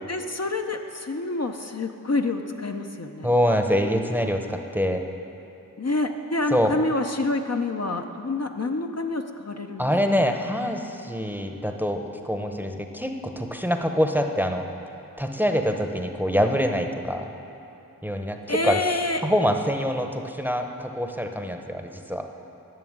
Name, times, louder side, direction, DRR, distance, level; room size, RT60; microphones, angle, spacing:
voice 1, 0.1-3.3 5.8-9.9 18.5-19.2, left 2 dB, 50° left, 4 dB, 0.7 m, -27 dB
voice 2, 3.2-5.0 6.5-6.8 9.8-14.7 15.2-17.3 18.0-18.8 19.2-22.3, equal, 5° right, 4 dB, 0.8 m, -25 dB
11.0 x 6.8 x 9.5 m, 2.8 s
wide cardioid pair, 40°, 34 cm